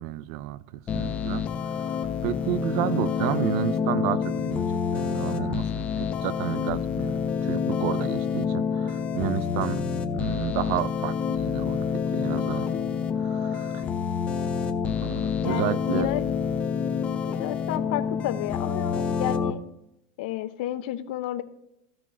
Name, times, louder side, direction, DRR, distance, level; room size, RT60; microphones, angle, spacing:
voice 1, 0.0-9.8 10.1-12.7 13.2-13.8 15.0-16.1, right 14 dB, 55° right, 18 dB, 0.4 m, -31 dB
sound 1, 0.9-19.5, left 6 dB, 25° left, 0.7 m, -28 dB
voice 2, 15.4-16.2 17.3-19.6 20.2-21.4, left 13 dB, 70° left, 11 dB, 0.8 m, -31 dB
15.5 x 6.1 x 2.6 m, 0.81 s
supercardioid pair, 135°, 5 cm